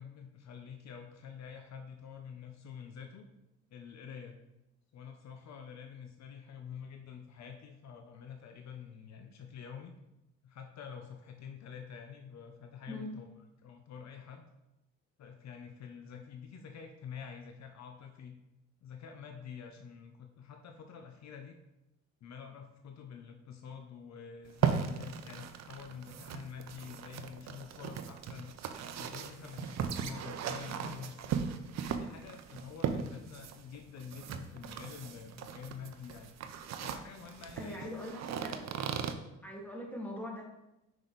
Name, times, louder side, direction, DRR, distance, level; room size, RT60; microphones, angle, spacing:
voice 1, 0.0-3.3 3.7-4.4 4.9-9.9 10.4-13.3 13.6-14.4 15.2-18.4 18.8-21.5 22.2-28.5 28.9-31.3 31.9-36.3 36.8-37.9, left 7 dB, 65° left, 5 dB, 0.7 m, -47 dB
sound 1, 24.4-39.1, right 7 dB, 60° right, 0.6 m, -38 dB
voice 2, 37.6-38.7 39.4-40.4, left 1 dB, 5° left, -3 dB, 2.0 m, -41 dB
5.9 x 5.0 x 4.0 m, 0.91 s
cardioid pair, 90°, 30 cm